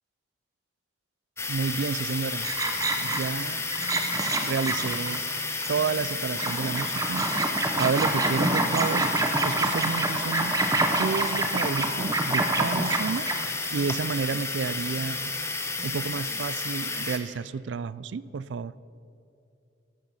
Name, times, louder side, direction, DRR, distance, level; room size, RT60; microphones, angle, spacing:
sound 1, 1.4-17.2, left 3 dB, 15° left, 1.0 m, -32 dB
voice 1, 1.5-2.5 3.0-3.6 4.4-5.2 5.7-7.3 7.7-9.1 9.4-10.6 10.9-13.3 13.7-15.3 15.8-18.7, right 5 dB, 80° right, 19 dB, 0.4 m, -30 dB
sound 2, 2.4-3.4 3.7-6.1 6.4-13.4, right 2 dB, 20° right, 0.9 m, -27 dB
sound 3, 2.5-17.2, equal, 45° left, 3.0 m, -48 dB
13.5 x 12.0 x 5.5 m, 2.6 s
head